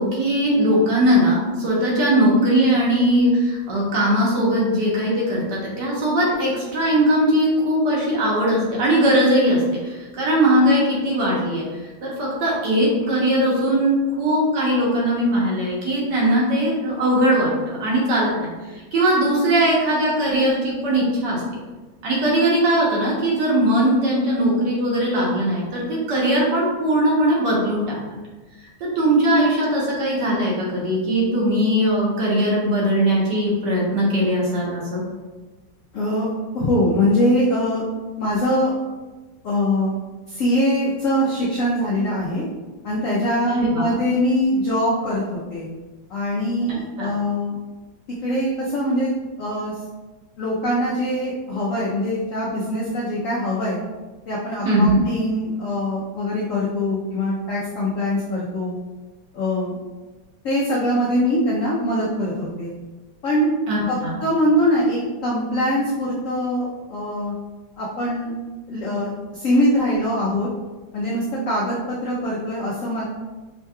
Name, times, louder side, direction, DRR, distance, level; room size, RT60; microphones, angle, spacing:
voice 1, 0.0-18.5 18.9-21.4 22.0-28.0 28.8-35.0 43.5-43.9 47.0-47.1 54.6-55.0 63.7-64.2, right 1 dB, 65° right, -4 dB, 1.5 m, -20 dB
voice 2, 35.9-36.3 36.5-37.8 38.2-38.7 39.4-40.0 40.3-42.4 42.8-45.7 46.1-47.6 48.2-49.1 49.4-49.8 50.4-53.8 54.3-58.8 59.3-59.8 60.4-62.7 63.2-63.5 63.9-67.3 67.8-68.3 68.7-70.5 70.9-73.0, left 1 dB, 75° left, -6 dB, 0.7 m, -22 dB
5.5 x 2.9 x 2.2 m, 1.2 s
omnidirectional pair, 2.2 m